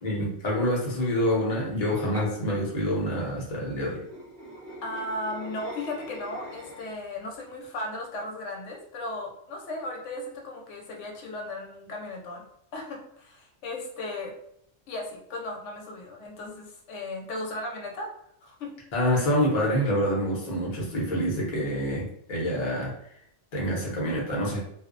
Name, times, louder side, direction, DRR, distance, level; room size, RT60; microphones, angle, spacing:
voice 1, 0.0-4.0 18.9-22.9 23.5-24.6, equal, 40° left, -3 dB, 0.7 m, -27 dB
sound 1, 1.9-2.3 4.0-7.0, equal, 15° right, 0.6 m, -42 dB
voice 2, 4.8-12.4 12.7-14.3 14.9-18.1 18.4-18.7, left 1 dB, 85° left, 1 dB, 0.9 m, -36 dB
2.5 x 2.0 x 2.4 m, 0.72 s
omnidirectional pair, 1.2 m